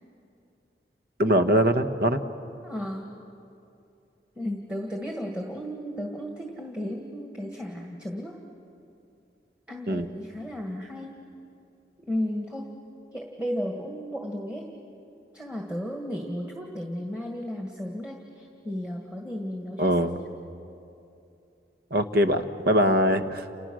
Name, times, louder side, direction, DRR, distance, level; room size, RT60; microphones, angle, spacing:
voice 1, 1.2-2.2 9.9-10.1 19.8-20.2 21.9-23.4, equal, 60° right, 8 dB, 1.3 m, -22 dB
voice 2, 2.6-3.1 4.4-8.4 9.7-11.2 12.1-12.7 13.1-14.7 15.3-19.9, equal, 5° right, 1 dB, 1.8 m, -34 dB
30.0 x 29.5 x 6.3 m, 2.7 s
head